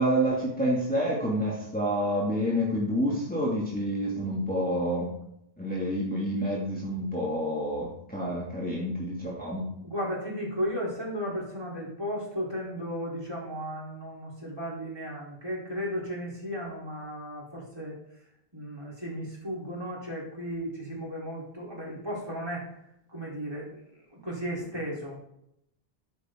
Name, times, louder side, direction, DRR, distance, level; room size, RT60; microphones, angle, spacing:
voice 1, 0.0-5.1 5.6-9.7, equal, 10° left, -6 dB, 2.8 m, -28 dB
voice 2, 9.8-18.0 18.5-22.7 23.1-23.8 24.1-25.2, equal, 25° right, -4 dB, 4.8 m, -35 dB
14.0 x 10.5 x 4.0 m, 0.77 s
omnidirectional pair, 1.0 m